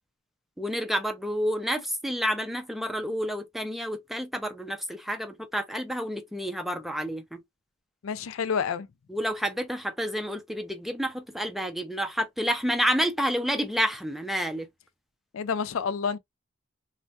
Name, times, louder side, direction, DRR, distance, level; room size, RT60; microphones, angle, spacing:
voice 1, 0.6-7.4 9.1-14.7, equal, ahead, 0.4 m, -29 dB
voice 2, 8.0-8.9 15.3-16.2, left 6 dB, 80° left, 0.4 m, -28 dB
3.2 x 2.1 x 2.7 m
head